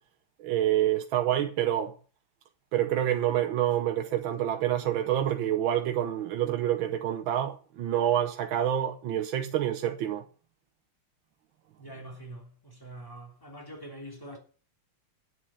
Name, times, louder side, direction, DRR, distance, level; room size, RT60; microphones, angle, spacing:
voice 1, 0.4-1.9 2.7-10.2, right 11 dB, 70° right, 1.6 m, -27 dB
voice 2, 11.8-14.4, right 1 dB, 10° left, 3.0 m, -44 dB
10.0 x 7.9 x 7.6 m
omnidirectional pair, 2.4 m